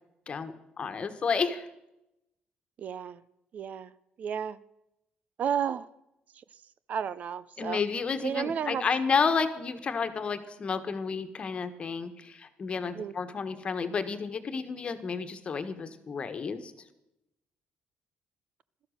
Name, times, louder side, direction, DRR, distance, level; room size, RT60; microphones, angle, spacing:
voice 1, 0.3-1.7 7.6-16.7, left 5 dB, 35° left, 10 dB, 1.4 m, -31 dB
voice 2, 2.8-3.2 3.5-3.9 4.2-4.6 5.4-5.9 6.3-6.4 6.9-7.8 8.2-8.8 12.9-13.1, right 8 dB, 50° right, 17 dB, 0.5 m, -32 dB
16.5 x 13.0 x 6.5 m, 0.87 s
cardioid pair, 135°, 3 cm